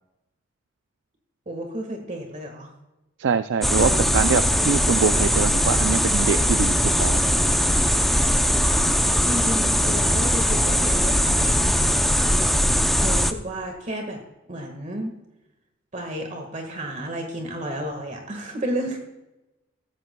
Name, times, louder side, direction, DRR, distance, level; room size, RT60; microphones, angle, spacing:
voice 1, 1.4-2.7 3.8-4.0 9.2-12.3 13.0-14.2 14.5-15.1 15.9-19.0, right 1 dB, 40° right, 4 dB, 1.6 m, -32 dB
voice 2, 3.2-7.2, right 6 dB, 70° right, 11 dB, 0.4 m, -24 dB
sound 1, 3.6-13.3, equal, ahead, 0.6 m, -20 dB
16.0 x 15.0 x 2.3 m, 0.97 s
head